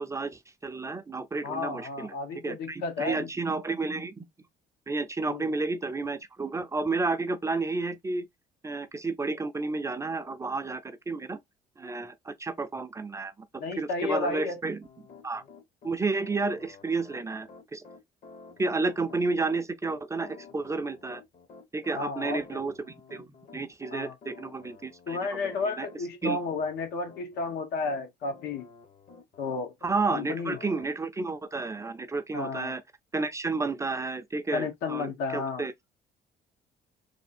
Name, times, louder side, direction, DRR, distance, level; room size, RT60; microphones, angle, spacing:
voice 1, 0.0-2.1 2.4-4.2 4.9-8.3 8.6-11.4 11.8-13.3 13.8-14.9 15.2-15.4 15.8-17.8 18.6-21.2 21.7-25.4 25.8-25.9 26.2-26.4 29.8-32.8 33.1-35.7, right 3 dB, 15° right, 0.5 m, -31 dB
voice 2, 1.4-3.3 5.3-5.4 13.6-14.6 21.9-22.6 23.9-24.1 25.1-28.7 29.4-29.7 30.1-30.6 32.3-32.7 34.5-35.6, left 4 dB, 80° left, 1.3 m, -32 dB
Piano, 14.8-30.0 30.5-30.9, left 5 dB, 45° left, 1.1 m, -51 dB
3.4 x 2.7 x 4.2 m
cardioid pair, 110°, 17 cm